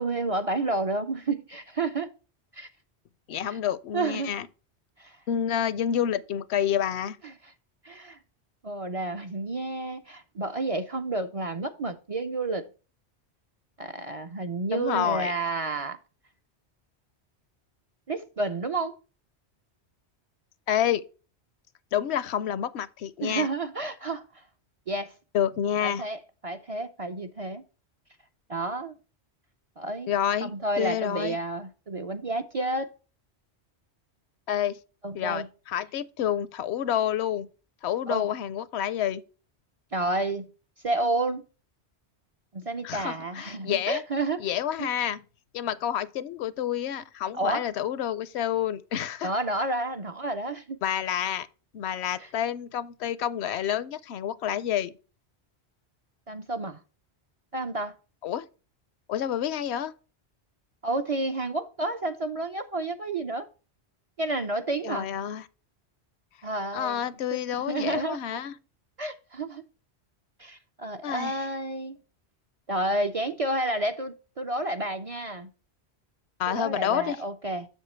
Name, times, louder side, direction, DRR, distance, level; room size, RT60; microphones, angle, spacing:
voice 1, 0.0-2.1 2.5-2.7 3.5-3.6 3.9-4.4 5.0-5.2 7.2-7.3 7.8-8.2 8.6-12.7 13.8-16.0 18.1-19.0 23.2-24.4 24.9-25.1 25.8-27.6 28.5-29.0 29.8-30.1 30.4-32.9 35.0-35.5 38.1-38.3 39.9-40.4 40.8-41.4 42.5-44.4 44.8-44.9 47.3-47.7 49.2-50.8 52.2-52.3 56.3-56.8 57.5-57.9 60.8-63.5 64.2-65.1 66.4-68.2 69.0-69.6 70.4-72.0 72.7-75.5 76.5-77.7, right 2 dB, 40° right, 0.5 m, -30 dB
voice 2, 3.3-4.5 5.3-7.2 14.7-15.3 20.7-21.0 21.9-23.5 25.3-26.0 30.1-30.5 30.8-31.4 34.5-34.8 35.1-37.5 37.8-39.2 42.8-44.0 44.4-45.2 45.5-49.3 50.8-51.5 51.7-54.9 58.2-58.4 59.1-59.9 64.8-65.4 66.7-68.5 71.0-71.4 76.4-77.2, left 10 dB, 75° left, 0.8 m, -28 dB
7.3 x 7.3 x 3.2 m
omnidirectional pair, 1.1 m